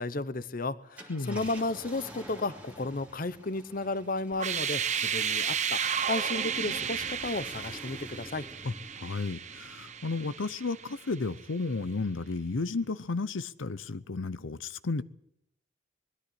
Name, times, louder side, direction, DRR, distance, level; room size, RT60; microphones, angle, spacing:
voice 1, 0.0-8.4, left 2 dB, 45° left, 15 dB, 0.8 m, -33 dB
Car, 0.8-11.6 12.1-12.2 14.3-14.5, right 1 dB, 10° right, 2.5 m, -50 dB
voice 2, 1.1-1.5 8.6-15.0, left 3 dB, 80° left, 15 dB, 0.7 m, -33 dB
sound 1, 4.3-11.2, right 7 dB, 40° right, 1.0 m, -33 dB
20.5 x 13.5 x 10.0 m, 0.74 s
head